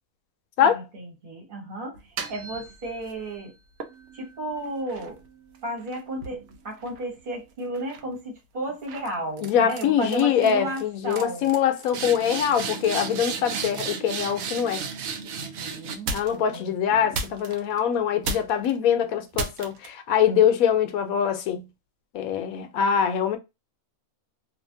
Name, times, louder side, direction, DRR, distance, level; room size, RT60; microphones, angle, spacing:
voice 1, 0.6-3.5 4.1-5.2 5.6-11.5 15.3-17.1, right 1 dB, 40° right, 1.2 m, -34 dB
sound 1, 1.9-3.2 3.8-7.4 7.7-8.1 8.9-9.1 9.4-9.8 10.1-10.5 10.8-10.9 11.1-16.6 17.1-17.8 18.2-18.7 19.3-19.9, right 5 dB, 70° right, 1.0 m, -34 dB
voice 2, 9.4-14.9 16.1-21.7 22.1-23.4, left 8 dB, 75° left, 1.0 m, -23 dB
2.7 x 2.5 x 2.6 m
omnidirectional pair, 1.6 m